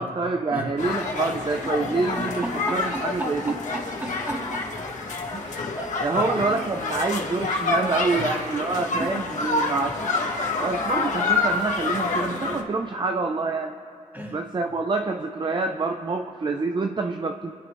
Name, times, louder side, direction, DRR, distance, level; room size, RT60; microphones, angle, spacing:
voice 1, 0.0-3.6 5.3-5.6 6.0-13.8 14.3-17.5, right 3 dB, 35° right, 5 dB, 0.7 m, -27 dB
sound 1, 0.8-12.6, left 3 dB, 65° left, 1.7 m, -28 dB
voice 2, 2.2-4.7 5.8-6.7 8.1-8.3 9.0-9.1 14.1-14.4, right 1 dB, 15° right, -3 dB, 3.0 m, -34 dB
29.0 x 10.5 x 3.2 m, 2.4 s
cardioid pair, 80°, 14 cm